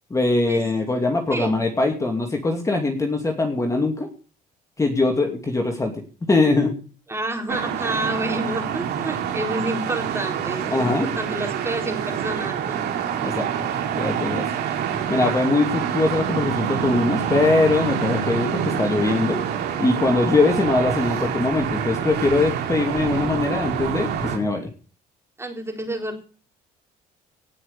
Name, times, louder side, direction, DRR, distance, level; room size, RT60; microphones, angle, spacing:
voice 1, 0.1-4.1 4.8-6.0 6.3-6.7 10.7-11.1 13.2-13.5 14.0-14.5 15.1-19.4 19.8-24.7, left 3 dB, 20° left, 3 dB, 2.6 m, -22 dB
voice 2, 1.3-1.7 7.1-12.9 25.4-26.2, right 1 dB, 15° right, 3 dB, 4.0 m, -29 dB
sound 1, 7.5-24.4, right 8 dB, 75° right, 3.2 m, -26 dB
18.0 x 6.4 x 6.9 m, 0.39 s
cardioid pair, 110°, 17 cm